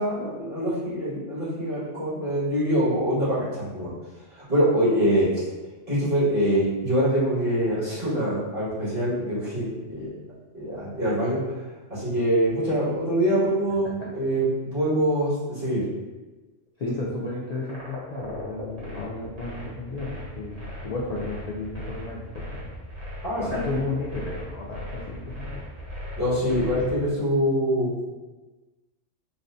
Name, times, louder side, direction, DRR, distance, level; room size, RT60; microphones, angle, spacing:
voice 1, 0.0-3.9 4.3-5.4 5.9-10.1 10.5-11.6 11.9-15.8 23.2-23.6 26.2-28.0, equal, 45° right, -11 dB, 1.8 m, -24 dB
voice 2, 16.8-22.7 23.4-25.6, left 2 dB, 75° left, -4 dB, 0.3 m, -33 dB
sound 1, 17.6-26.9, left 1 dB, 65° right, 1.3 m, -37 dB
4.0 x 2.1 x 2.5 m, 1.2 s
omnidirectional pair, 1.2 m